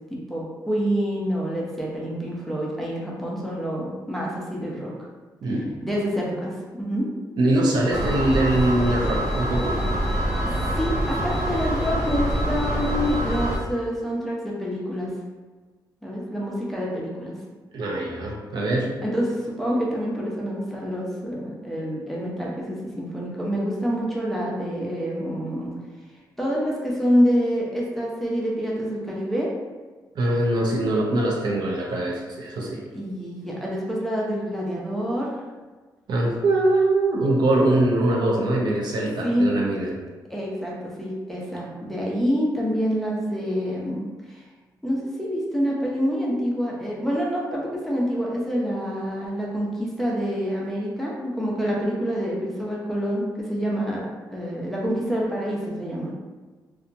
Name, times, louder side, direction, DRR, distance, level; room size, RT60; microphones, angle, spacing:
voice 1, 0.1-4.9 5.8-6.5 6.8-7.1 10.4-15.1 16.0-17.3 19.0-25.7 26.4-29.5 32.9-35.4 39.2-39.5 40.3-44.4 44.8-56.1, equal, ahead, -5 dB, 0.5 m, -27 dB
voice 2, 7.4-9.8 17.7-19.0 30.1-32.8 36.1-39.9, right 1 dB, 70° right, -1 dB, 0.5 m, -22 dB
sound 1, 7.9-13.6, equal, 30° right, 1.2 m, -25 dB
2.7 x 2.2 x 2.5 m, 1.3 s
wide cardioid pair, 130°, 8 cm